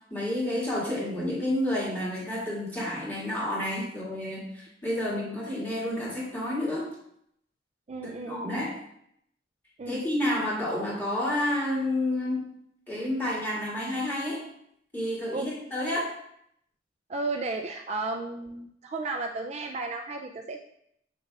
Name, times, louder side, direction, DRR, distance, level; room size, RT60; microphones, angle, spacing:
voice 1, 0.1-6.9 8.0-8.7 9.9-12.4 12.9-14.4 14.9-16.1, left 1 dB, 10° left, -7 dB, 2.3 m, -30 dB
voice 2, 4.9-5.3 7.9-8.6 9.8-10.0 15.3-15.5 17.1-20.6, right 3 dB, 35° right, 3 dB, 0.3 m, -34 dB
6.9 x 6.3 x 2.4 m, 0.73 s
head